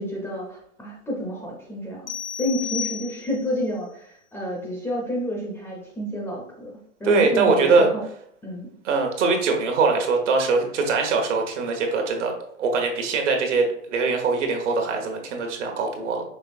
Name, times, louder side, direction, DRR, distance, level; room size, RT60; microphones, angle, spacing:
voice 1, 0.0-2.1 2.4-8.0 8.4-8.7, equal, 5° left, -3 dB, 0.5 m, -29 dB
sound 1, 2.1-3.6, left 8 dB, 85° left, 0.6 m, -32 dB
voice 2, 7.0-7.9 8.8-12.3 12.6-16.2, right 4 dB, 65° right, 3 dB, 1.2 m, -22 dB
5.5 x 3.3 x 2.4 m, 0.67 s
hypercardioid pair, 125°, 39 cm